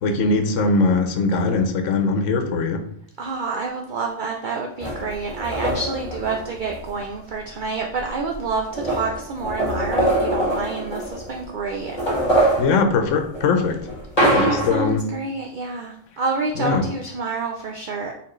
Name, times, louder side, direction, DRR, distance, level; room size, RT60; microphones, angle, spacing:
voice 1, 0.0-2.8 12.6-13.8 14.2-15.0 16.6-16.8, left 4 dB, 85° left, 6 dB, 1.0 m, -21 dB
voice 2, 3.2-12.0 14.2-18.1, right 4 dB, 60° right, 1 dB, 0.5 m, -28 dB
sound 1, 4.8-7.0 8.0-8.1 8.3-11.4 11.8-14.9, right 1 dB, 30° left, 1.8 m, -24 dB
4.5 x 3.6 x 3.1 m, 0.68 s
omnidirectional pair, 1.3 m